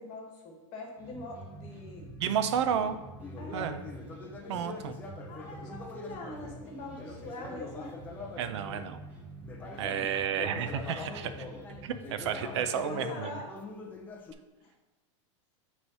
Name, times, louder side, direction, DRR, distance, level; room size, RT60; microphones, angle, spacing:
voice 1, 0.0-2.1 2.7-2.9 3.4-3.7 4.4-4.7 5.3-8.0 9.7-10.1 12.7-13.5 14.6-14.7, left 2 dB, 35° left, 1 dB, 1.3 m, -43 dB
sound 1, 1.0-12.6, right 1 dB, 10° right, 1.3 m, -47 dB
voice 2, 2.2-3.0 3.5-3.8 4.5-4.9 8.4-9.0 9.8-11.5 11.8-13.3, right 8 dB, 60° right, 10 dB, 0.6 m, -31 dB
Conversation, 3.2-8.9 9.4-14.3, left 3 dB, 10° left, 0.5 m, -44 dB
8.3 x 3.3 x 5.5 m, 1.1 s
supercardioid pair, 170°, 16 cm